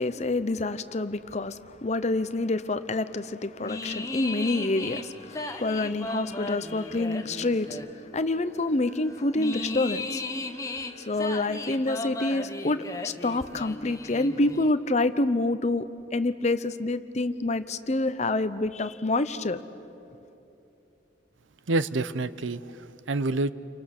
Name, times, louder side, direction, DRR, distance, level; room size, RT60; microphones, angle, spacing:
voice 1, 0.0-7.7 8.1-10.2 11.1-15.8 16.1-19.6, left 2 dB, 35° left, 12 dB, 0.7 m, -27 dB
sound 1, 3.6-14.7, left 2 dB, 15° left, 1.0 m, -36 dB
voice 2, 21.7-23.5, right 2 dB, 90° right, 15 dB, 0.7 m, -28 dB
29.5 x 24.5 x 6.6 m, 2.9 s
head